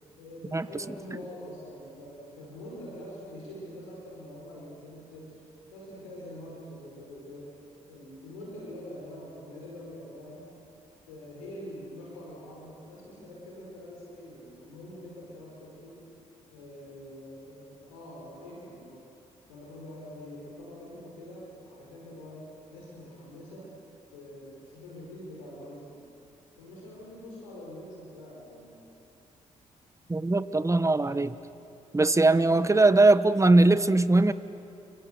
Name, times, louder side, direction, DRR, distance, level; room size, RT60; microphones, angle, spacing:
voice 1, 0.2-5.4 5.7-7.5 7.9-10.6 11.1-16.0 16.5-19.1 19.5-23.8 24.1-26.0 26.6-28.8, left 1 dB, 85° left, -3 dB, 5.2 m, -44 dB
voice 2, 30.1-31.4 31.9-34.3, right 2 dB, 20° right, 14 dB, 1.3 m, -21 dB
29.5 x 25.0 x 8.0 m, 2.7 s
hypercardioid pair, 45°, 17 cm